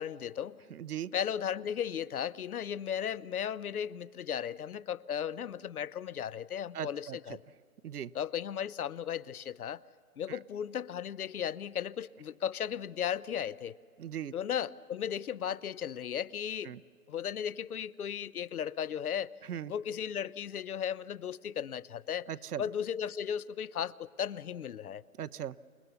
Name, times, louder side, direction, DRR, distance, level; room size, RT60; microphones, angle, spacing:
voice 1, 0.0-0.6 1.1-7.4 8.1-9.8 10.2-13.8 14.3-16.7 17.1-19.3 19.7-22.3 22.6-25.0, left 9 dB, 75° left, 21 dB, 0.7 m, -36 dB
voice 2, 0.7-1.1 6.7-7.2 7.8-8.1 10.3-10.4 14.0-14.3 16.6-16.8 19.5-19.7 22.3-22.6 25.2-25.6, right 10 dB, 85° right, 15 dB, 0.7 m, -38 dB
28.5 x 18.5 x 6.9 m, 2.2 s
hypercardioid pair, 175°, 44 cm